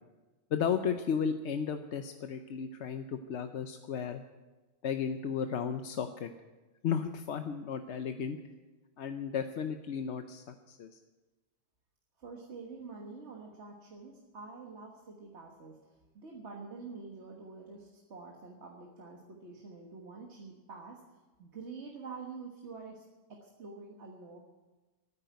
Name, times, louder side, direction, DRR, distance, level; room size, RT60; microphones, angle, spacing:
voice 1, 0.5-4.2 4.8-6.3 6.8-8.4 9.0-10.9, left 7 dB, 75° left, 7 dB, 1.0 m, -34 dB
voice 2, 12.2-23.0 23.3-24.4, right 4 dB, 75° right, 1 dB, 1.8 m, -47 dB
13.0 x 9.9 x 9.3 m, 1.2 s
omnidirectional pair, 1.2 m